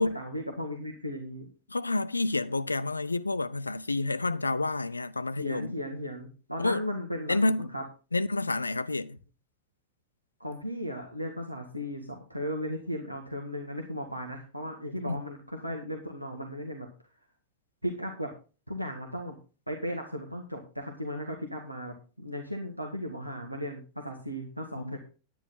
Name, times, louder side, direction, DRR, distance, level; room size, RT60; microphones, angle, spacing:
voice 1, 0.1-1.5 5.4-7.8 10.4-16.9 17.8-18.3 18.7-19.3 19.7-25.0, equal, 90° right, 1.7 m, -36 dB
voice 2, 1.7-5.7 6.6-6.8 7.3-7.7 8.1-9.2 15.1-15.2 24.8-25.0, left 2 dB, 80° left, 0.5 m, -29 dB
10.0 x 10.0 x 4.0 m
figure-of-eight pair, 90°, 0 cm